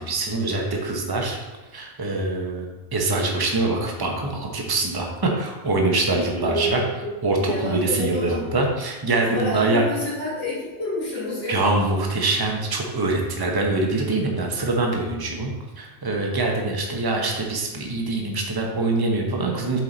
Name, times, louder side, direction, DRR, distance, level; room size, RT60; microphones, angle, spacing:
voice 1, 0.0-1.4 1.7-2.7 2.9-6.8 7.2-9.8 11.5-19.8, right 2 dB, 20° right, 0 dB, 0.9 m, -24 dB
voice 2, 6.4-8.4 9.2-11.7, left 1 dB, 75° left, -10 dB, 2.6 m, -29 dB
7.5 x 4.6 x 4.0 m, 1.1 s
omnidirectional pair, 1.2 m